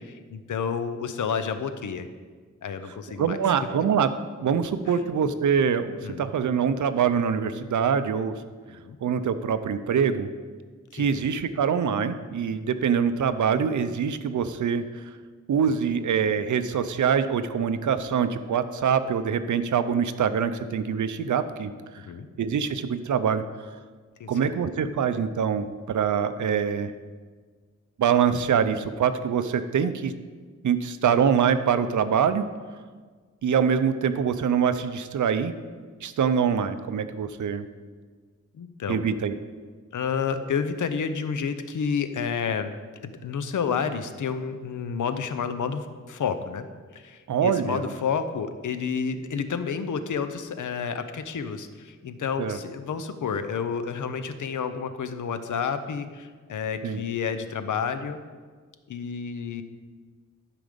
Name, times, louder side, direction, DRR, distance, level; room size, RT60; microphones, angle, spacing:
voice 1, 0.0-2.1 2.6-3.4 4.9-5.0 6.0-6.2 8.7-9.0 10.9-11.1 22.0-22.3 24.2-24.3 38.5-39.0 39.9-42.7 43.2-46.7 46.9-58.2 58.9-59.6, left 6 dB, 90° left, 10 dB, 0.7 m, -30 dB
voice 2, 3.2-4.1 4.4-8.3 9.0-10.3 10.9-15.0 15.5-21.7 22.4-23.4 24.3-26.9 28.0-30.1 30.6-32.4 33.4-35.5 36.0-37.6 38.9-39.4 47.3-47.9 52.4-52.6 56.8-57.0, right 7 dB, 80° right, 11 dB, 0.6 m, -24 dB
11.5 x 5.1 x 5.2 m, 1.5 s
wide cardioid pair, 160°, 30 cm